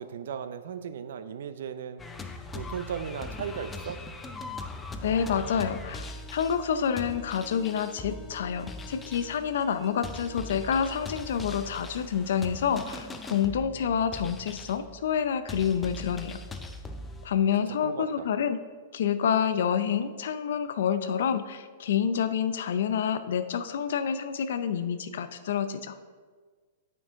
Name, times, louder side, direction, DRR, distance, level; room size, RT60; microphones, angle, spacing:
voice 1, 0.0-2.0 2.5-4.0 17.8-18.3, right 8 dB, 70° right, 12 dB, 0.4 m, -36 dB
sound 1, 2.0-17.3, left 2 dB, 10° left, 0.4 m, -41 dB
voice 2, 5.0-16.4 17.2-18.6 18.9-26.0, left 7 dB, 65° left, 11 dB, 0.5 m, -28 dB
8.8 x 5.3 x 3.6 m, 1.5 s
supercardioid pair, 170°, 0 cm